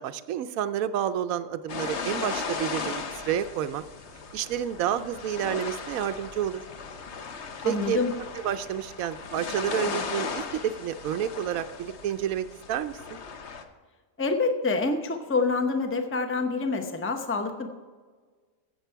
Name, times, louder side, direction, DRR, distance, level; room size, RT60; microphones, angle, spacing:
voice 1, 0.0-3.8 4.3-6.6 7.6-8.0 8.4-13.2, right 10 dB, 70° right, 12 dB, 0.9 m, -30 dB
sound 1, 1.7-13.6, left 5 dB, 50° left, 1.0 m, -37 dB
voice 2, 7.6-8.1 14.2-17.7, left 3 dB, 15° left, 6 dB, 0.4 m, -27 dB
15.0 x 7.8 x 4.6 m, 1.5 s
omnidirectional pair, 1.7 m